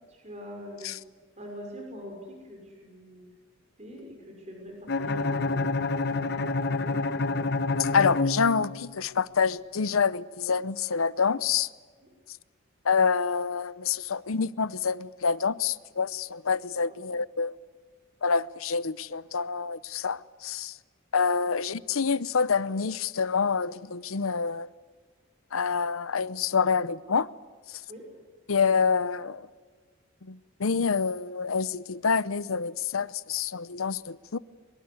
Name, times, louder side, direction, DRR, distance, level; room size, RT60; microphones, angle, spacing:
voice 1, 0.1-0.9 1.4-3.3 3.8-5.7 12.0-12.1 16.9-17.0 21.4-21.5 27.9-28.0, equal, 35° right, 5.9 m, -43 dB
Bowed string instrument, 4.9-9.0, left 3 dB, 55° left, 1.0 m, -28 dB
voice 2, 7.8-11.7 12.8-17.6 18.2-20.7 21.1-24.7 25.5-27.3 28.5-29.5 30.3-34.4, left 5 dB, 85° left, 0.8 m, -27 dB
23.0 x 23.0 x 9.7 m
head